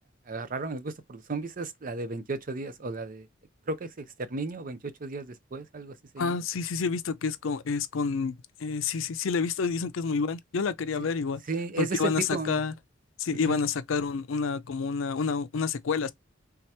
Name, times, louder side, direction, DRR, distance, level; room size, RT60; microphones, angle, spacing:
voice 1, 0.3-3.3 3.7-6.4 11.0-11.1 11.5-12.6 13.5-13.6, right 3 dB, 45° right, 0.6 m, -34 dB
voice 2, 6.2-11.4 11.8-12.7 13.2-16.1, left 5 dB, 85° left, 0.5 m, -29 dB
3.5 x 2.9 x 3.2 m
head